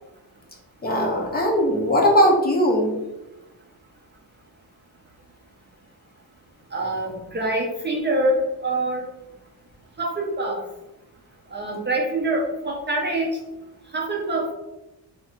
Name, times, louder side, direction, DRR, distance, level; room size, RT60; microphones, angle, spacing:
voice 1, 0.8-3.0, equal, 25° left, 0 dB, 0.6 m, -19 dB
voice 2, 6.7-9.0 10.0-10.6 11.5-13.4 13.9-14.5, right 1 dB, 30° right, -1 dB, 0.4 m, -25 dB
3.5 x 2.4 x 4.2 m, 0.97 s
wide cardioid pair, 175°, 40 cm